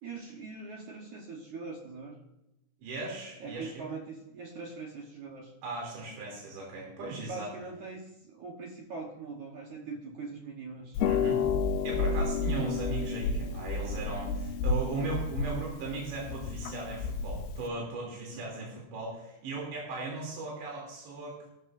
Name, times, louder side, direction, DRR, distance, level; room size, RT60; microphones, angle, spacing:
voice 1, 0.0-2.2 3.4-5.5 7.0-11.0 18.3-18.8, right 4 dB, 65° right, 0 dB, 2.1 m, -42 dB
voice 2, 2.8-3.9 5.6-7.5 11.1-11.4 11.8-21.5, right 3 dB, 85° right, -3 dB, 5.2 m, -37 dB
Harp, 10.9-17.7, left 4 dB, 80° left, 2.4 m, -31 dB
15.5 x 13.0 x 2.6 m, 0.90 s
omnidirectional pair, 4.9 m